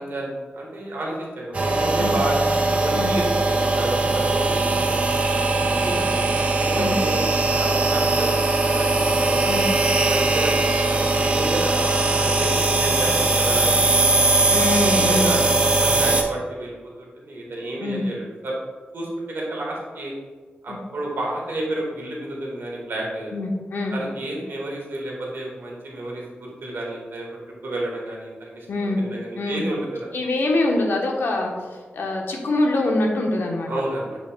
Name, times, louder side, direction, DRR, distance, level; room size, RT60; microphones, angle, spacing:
voice 1, 0.0-2.4 2.8-5.0 5.5-9.6 10.1-14.1 14.8-18.6 18.9-20.1 20.6-23.3 23.9-27.3 27.6-30.1 33.6-34.2, right 1 dB, 70° right, -3 dB, 1.7 m, -31 dB
sound 1, 1.5-16.2, right 2 dB, 35° right, 0.7 m, -20 dB
voice 2, 14.5-15.4 17.8-18.0 20.7-20.8 23.3-24.0 28.7-29.0 29.3-29.6 30.1-33.7, left 2 dB, 75° left, 1 dB, 1.0 m, -24 dB
7.6 x 5.3 x 2.3 m, 1.5 s
wide cardioid pair, 170°, 4 cm